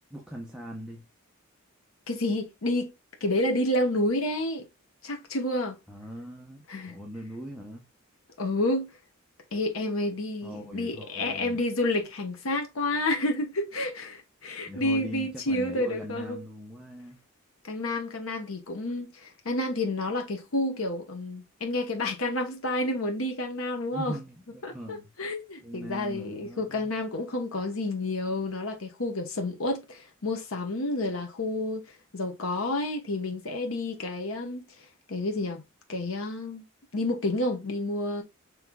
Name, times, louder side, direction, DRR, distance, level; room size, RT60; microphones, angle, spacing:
voice 1, 0.1-1.1 5.9-7.9 10.4-11.6 14.7-17.2 23.9-25.1 25.6-26.9, equal, 5° right, 0.8 m, -40 dB
voice 2, 2.1-2.9 3.2-4.6 5.0-5.8 6.7-7.0 8.4-8.9 9.5-16.4 17.6-24.2 24.6-31.8 32.1-34.6 35.1-35.6 35.9-36.6 36.9-38.2, left 1 dB, 75° left, 1.0 m, -30 dB
5.5 x 3.2 x 2.3 m
head